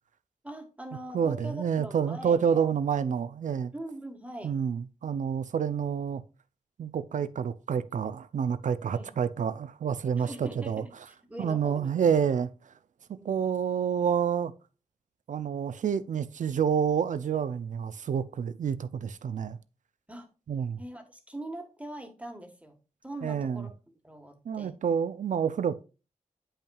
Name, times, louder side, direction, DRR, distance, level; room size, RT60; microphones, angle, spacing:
voice 1, 0.4-2.7 3.7-4.5 8.9-9.1 10.2-11.9 13.1-13.4 20.1-20.3 20.8-24.8, right 1 dB, 10° right, 1.4 m, -42 dB
voice 2, 1.1-3.7 4.4-6.2 6.8-10.8 11.4-12.5 13.2-14.5 15.3-19.6 20.5-20.8 23.2-23.7 24.5-25.8, right 7 dB, 70° right, 0.5 m, -28 dB
8.7 x 5.5 x 2.3 m
cardioid pair, 70°, 13 cm